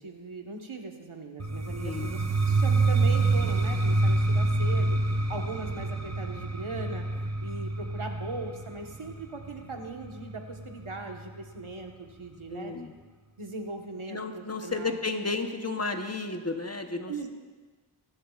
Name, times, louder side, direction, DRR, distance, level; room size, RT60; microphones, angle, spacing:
voice 1, 0.0-12.9 13.4-15.0 17.1-17.3, right 3 dB, 75° right, 2 dB, 1.4 m, -39 dB
sound 1, 1.4-11.2, right 3 dB, 35° right, 0.8 m, -27 dB
voice 2, 1.8-2.1 12.5-12.9 14.1-17.3, left 3 dB, 30° left, 5 dB, 1.0 m, -33 dB
25.5 x 11.0 x 2.4 m, 1.4 s
wide cardioid pair, 50°, 49 cm